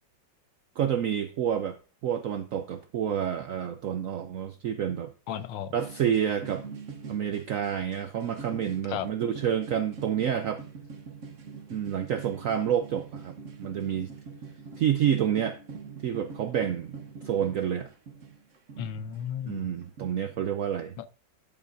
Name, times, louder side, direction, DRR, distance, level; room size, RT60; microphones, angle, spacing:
voice 1, 0.8-1.8 2.0-5.1 5.7-6.6 7.1-10.6 11.7-13.3 13.6-14.1 14.8-15.6 16.0-17.0 17.2-17.9 19.5-21.0, right 9 dB, 80° right, 0.7 m, -28 dB
voice 2, 5.3-5.7 8.9-9.1 18.8-19.7 21.0-21.1, left 9 dB, 90° left, 1.5 m, -34 dB
sound 1, 5.8-19.2 19.5-20.1, right 5 dB, 50° right, 1.1 m, -44 dB
11.0 x 7.0 x 2.6 m
omnidirectional pair, 2.0 m